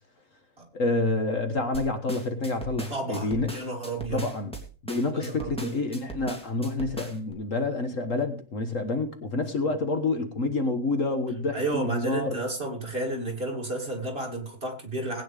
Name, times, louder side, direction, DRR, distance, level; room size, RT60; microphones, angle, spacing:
voice 1, 0.7-3.5 4.1-4.5 4.8-12.4, left 2 dB, 55° left, 7 dB, 1.6 m, -28 dB
sound 1, 1.7-7.3, right 2 dB, 5° left, 2.7 m, -39 dB
voice 2, 2.9-4.2 5.1-5.7 11.5-15.2, right 2 dB, 35° right, 0 dB, 3.3 m, -32 dB
20.0 x 9.4 x 3.4 m, 0.37 s
omnidirectional pair, 1.7 m